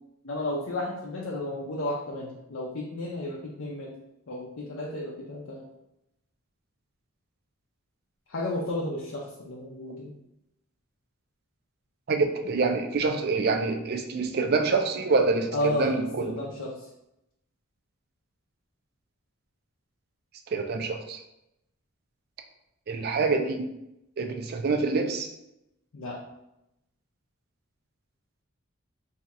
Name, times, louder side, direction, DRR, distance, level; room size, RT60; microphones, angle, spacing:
voice 1, 0.2-3.9 4.3-5.7 8.3-10.1 15.5-16.9 25.9-26.2, left 1 dB, 65° left, -2 dB, 0.5 m, -32 dB
voice 2, 12.1-16.2 20.5-21.2 22.9-23.7 24.2-25.3, right 4 dB, 50° right, 5 dB, 0.4 m, -26 dB
2.7 x 2.4 x 4.1 m, 0.85 s
head